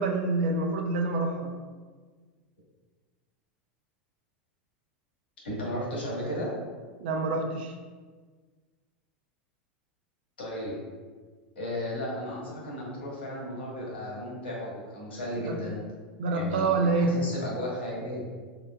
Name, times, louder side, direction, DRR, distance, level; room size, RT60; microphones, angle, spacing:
voice 1, 0.0-1.5 7.0-7.8 15.4-15.6 16.2-17.2, right 3 dB, 70° right, 3 dB, 0.6 m, -27 dB
voice 2, 5.4-6.5 10.4-10.7 11.5-15.8 16.3-18.3, equal, 85° left, -4 dB, 1.4 m, -34 dB
4.5 x 3.2 x 2.4 m, 1.5 s
hypercardioid pair, 95°, 5 cm